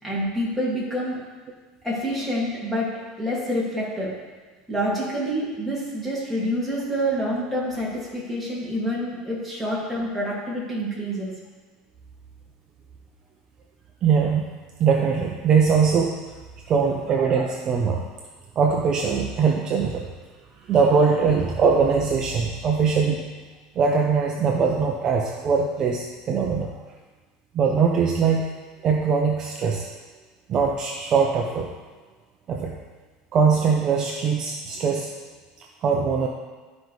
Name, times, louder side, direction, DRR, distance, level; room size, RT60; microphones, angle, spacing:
voice 1, 0.0-1.2 1.8-2.9 3.2-4.1 4.7-11.3, equal, 5° left, -7 dB, 2.1 m, -27 dB
voice 2, 14.0-14.4 14.8-16.1 16.7-18.0 18.6-20.1 20.6-23.2 23.8-26.7 27.5-28.5 28.8-29.9 30.5-31.7 32.5-32.7 33.3-35.1 35.6-36.3, right 5 dB, 30° right, 0 dB, 0.6 m, -21 dB
11.5 x 5.2 x 3.1 m, 1.3 s
cardioid pair, 165°, 2 cm